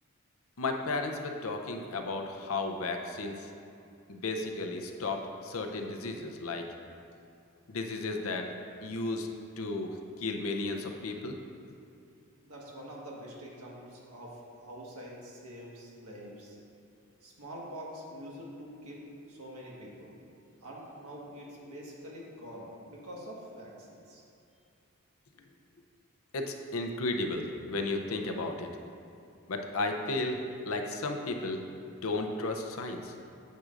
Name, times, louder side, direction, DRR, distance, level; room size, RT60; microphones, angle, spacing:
voice 1, 0.6-3.5 4.1-6.7 7.7-8.5 8.8-9.3 9.6-11.4 26.3-28.7 29.5-33.1, left 2 dB, 75° left, 4 dB, 0.6 m, -34 dB
voice 2, 12.4-16.6 17.2-20.2 20.6-24.2, equal, 90° right, -4 dB, 1.5 m, -45 dB
9.2 x 6.3 x 2.5 m, 2.6 s
head